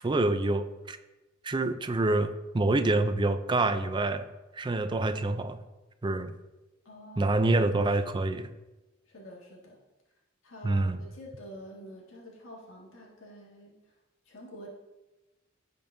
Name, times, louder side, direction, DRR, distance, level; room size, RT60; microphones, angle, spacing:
voice 1, 0.0-1.0 1.4-4.3 4.5-5.6 6.0-6.3 7.2-8.5 10.6-11.0, right 2 dB, 25° right, 10 dB, 0.4 m, -27 dB
voice 2, 6.8-7.4 7.8-8.0 9.1-9.8 10.4-13.9 14.3-14.7, equal, 80° left, -3 dB, 1.9 m, -48 dB
15.5 x 5.3 x 2.7 m, 1.1 s
head